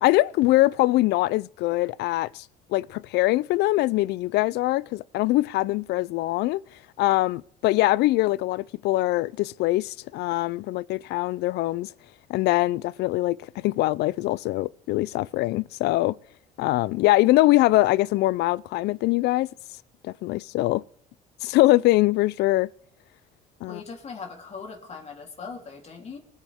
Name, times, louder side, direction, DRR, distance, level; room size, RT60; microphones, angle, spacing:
voice 1, 0.0-2.4 2.7-6.6 7.0-11.9 12.3-16.2 16.6-19.5 20.0-20.8 21.4-22.7 23.6-23.8, left 18 dB, 80° left, 0.4 m, -23 dB
voice 2, 23.6-26.2, left 5 dB, 40° left, 3.4 m, -40 dB
24.0 x 9.3 x 3.6 m
cardioid pair, 110°, 17 cm